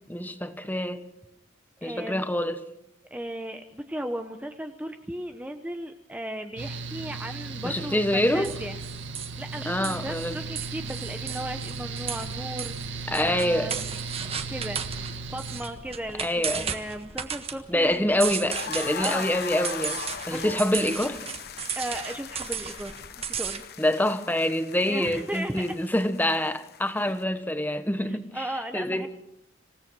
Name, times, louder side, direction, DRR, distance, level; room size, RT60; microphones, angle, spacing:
voice 1, 0.1-1.0 1.8-2.6 7.6-8.5 9.6-10.4 13.1-13.7 16.2-16.7 17.7-20.0 20.3-21.2 23.8-28.5 28.7-29.1, left 1 dB, 10° left, 1.1 m, -26 dB
voice 2, 1.8-2.3 3.1-8.8 9.4-13.9 14.5-14.8 15.3-18.0 19.0-19.3 20.3-20.6 21.8-23.6 24.8-25.7 27.0-27.1 28.1-29.1, right 1 dB, 5° right, 0.9 m, -36 dB
Mechanical fan, 6.6-15.6, right 4 dB, 60° right, 2.1 m, -36 dB
sound 1, 8.4-23.6, right 7 dB, 30° right, 1.4 m, -36 dB
sound 2, 18.5-27.2, left 7 dB, 50° left, 1.1 m, -39 dB
26.5 x 17.0 x 6.1 m
head